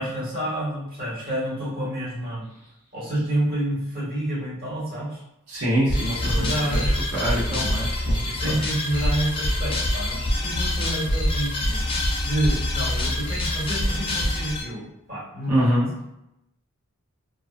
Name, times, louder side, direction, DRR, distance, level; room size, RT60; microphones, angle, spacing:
voice 1, 0.0-2.4 2.9-5.2 6.1-6.9 7.5-7.7 8.2-11.8 12.2-15.8, right 1 dB, 40° right, -8 dB, 1.3 m, -29 dB
voice 2, 5.5-8.6 15.5-15.9, equal, 85° right, -7 dB, 0.8 m, -25 dB
sound 1, 5.9-14.6, left 1 dB, 25° left, 0.4 m, -25 dB
2.3 x 2.2 x 2.5 m, 0.84 s
head